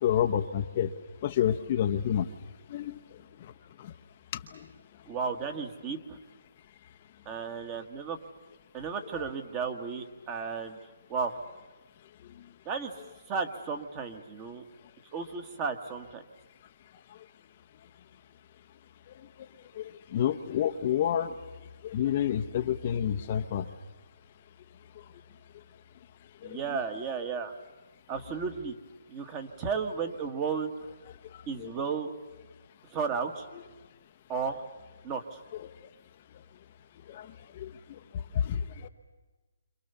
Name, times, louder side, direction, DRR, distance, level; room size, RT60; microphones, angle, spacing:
voice 1, 0.0-0.9 1.2-2.3 2.7-3.5 3.8-3.9 4.3-4.7 9.1-9.2 19.7-21.3 21.8-23.6 26.4-26.8 31.1-31.7 33.5-33.6 35.5-35.7 37.1-38.9, left 10 dB, 30° left, 6 dB, 0.9 m, -30 dB
voice 2, 5.1-6.2 7.2-8.2 8.7-10.8 11.1-11.4 12.6-12.9 13.3-14.6 15.1-16.2 26.4-27.5 28.1-28.7 29.1-30.7 31.5-32.1 32.9-33.5 34.3-34.6 35.0-35.4, right 5 dB, 20° right, 7 dB, 1.7 m, -33 dB
29.5 x 26.5 x 7.0 m, 1.2 s
hypercardioid pair, 165°, 0 cm